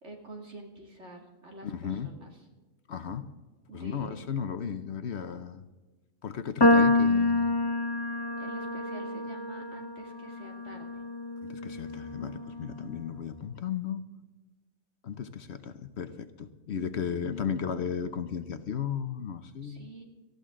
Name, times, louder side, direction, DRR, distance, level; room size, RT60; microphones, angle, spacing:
voice 1, 0.0-2.4 3.7-4.2 8.4-10.9 19.6-20.0, right 2 dB, 60° right, 1 dB, 2.9 m, -46 dB
voice 2, 1.6-2.1 2.9-3.3 3.7-5.6 6.2-7.5 11.4-14.0 15.0-19.9, left 7 dB, 60° left, 11 dB, 1.0 m, -35 dB
sound 1, 6.6-12.9, left 2 dB, 35° left, 0.4 m, -27 dB
18.5 x 14.0 x 3.7 m, 1.2 s
omnidirectional pair, 1.3 m